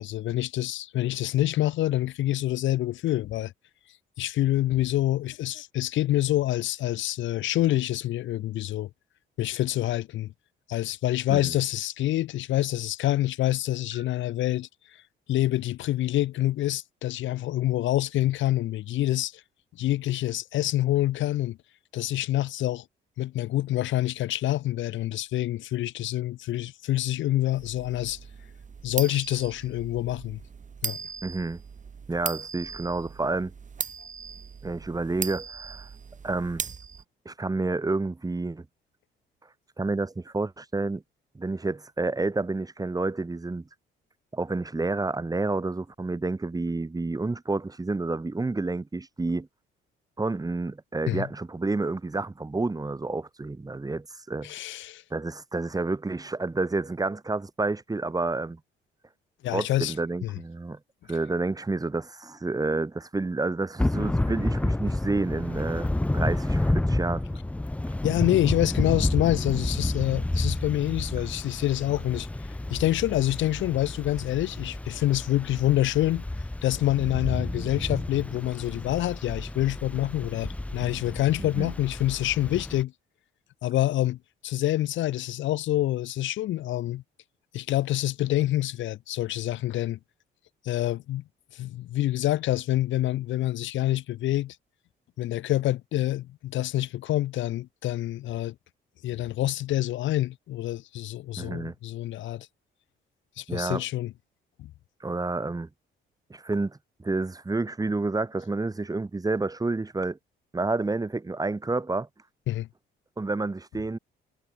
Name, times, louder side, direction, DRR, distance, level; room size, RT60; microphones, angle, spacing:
voice 1, 0.0-3.5 4.2-8.9 9.4-10.3 10.7-15.0 15.3-19.4 19.8-21.6 21.9-22.8 23.2-28.2 28.8-30.4 30.8-31.0 51.1-51.3 54.4-55.0 59.4-59.9 60.2-60.4 68.0-72.3 72.7-76.2 76.6-82.9 83.6-87.0 87.5-90.0 90.6-91.2 91.5-94.6 95.2-98.5 99.0-102.5 103.4-104.1 104.6-104.7 112.5-112.7, left 14 dB, 70° left, 0.6 m, -27 dB
sound 1, 27.5-37.0, right 6 dB, 40° right, 2.3 m, -39 dB
voice 2, 31.2-31.6 32.1-33.5 34.6-35.9 36.2-36.6 37.3-38.7 39.8-41.0 41.4-43.6 44.3-49.5 50.2-54.5 55.1-58.6 59.5-60.8 61.1-67.2 81.4-81.7 101.4-101.7 103.5-103.8 105.0-105.7 106.3-110.2 110.5-112.1 113.2-114.0, right 3 dB, 20° right, 2.1 m, -29 dB
Thunder / Rain, 63.8-82.8, left 1 dB, 5° left, 0.5 m, -30 dB
cardioid pair, 90°, 20 cm